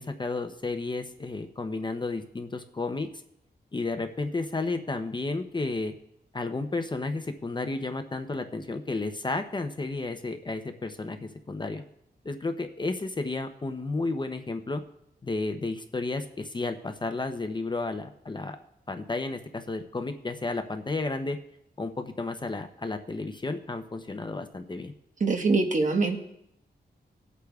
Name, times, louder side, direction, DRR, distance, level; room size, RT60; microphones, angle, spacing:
voice 1, 0.0-3.1 3.7-5.9 6.3-11.8 12.2-14.8 15.2-18.6 18.9-21.4 21.8-24.9, left 3 dB, 25° left, 7 dB, 0.6 m, -32 dB
voice 2, 25.2-26.2, right 3 dB, 50° right, 4 dB, 1.2 m, -24 dB
20.0 x 8.2 x 2.3 m, 0.79 s
wide cardioid pair, 110°, 17 cm